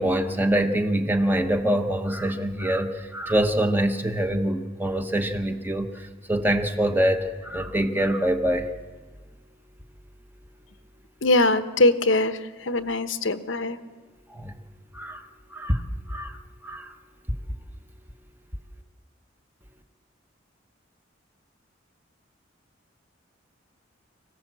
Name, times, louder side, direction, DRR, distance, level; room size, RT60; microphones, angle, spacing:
voice 1, 0.0-8.7 12.7-12.8 14.3-14.6 14.9-15.2 15.5-15.8 16.1-16.4 16.6-16.9, right 1 dB, 10° right, 6 dB, 1.2 m, -25 dB
voice 2, 11.2-13.8, left 2 dB, 85° left, 10 dB, 1.0 m, -22 dB
25.5 x 16.0 x 7.6 m, 1.4 s
head